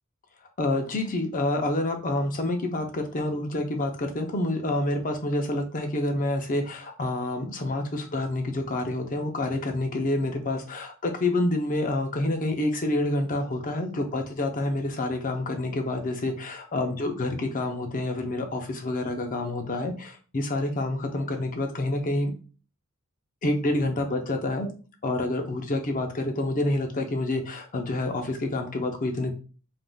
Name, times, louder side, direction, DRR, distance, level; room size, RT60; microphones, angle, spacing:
voice 1, 0.6-22.3 23.4-24.7 25.0-29.3, left 2 dB, 40° left, 4 dB, 0.6 m, -28 dB
3.5 x 2.5 x 2.2 m, 0.36 s
head